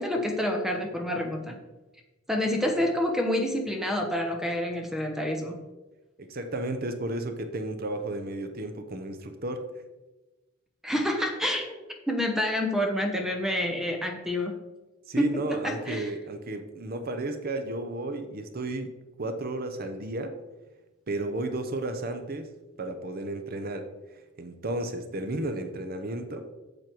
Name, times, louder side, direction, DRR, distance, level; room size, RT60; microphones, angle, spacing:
voice 1, 0.0-1.5 2.3-5.6 10.8-14.5 15.2-16.1, left 1 dB, ahead, 3 dB, 1.0 m, -28 dB
voice 2, 6.2-9.6 15.1-18.9 19.2-20.3 21.1-22.5 22.8-23.8 24.4-26.4, right 2 dB, 50° right, 7 dB, 0.8 m, -33 dB
7.8 x 7.6 x 4.6 m, 1.1 s
head